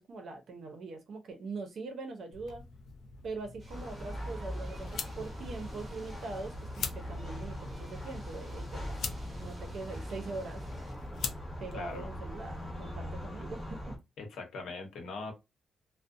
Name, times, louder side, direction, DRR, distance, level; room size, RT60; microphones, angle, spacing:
voice 1, 0.0-2.7 3.2-9.0 9.4-10.6 11.6-14.0, right 3 dB, 55° right, 0.6 m, -42 dB
sound 1, 2.3-12.7, left 5 dB, 60° left, 0.4 m, -44 dB
sound 2, 3.6-10.9, right 1 dB, 25° right, 1.0 m, -55 dB
sound 3, 3.7-14.0, equal, 5° left, 1.2 m, -41 dB
voice 2, 11.7-12.1 14.2-15.3, left 3 dB, 85° left, 0.9 m, -41 dB
2.6 x 2.0 x 2.5 m
wide cardioid pair, 160°, 0 cm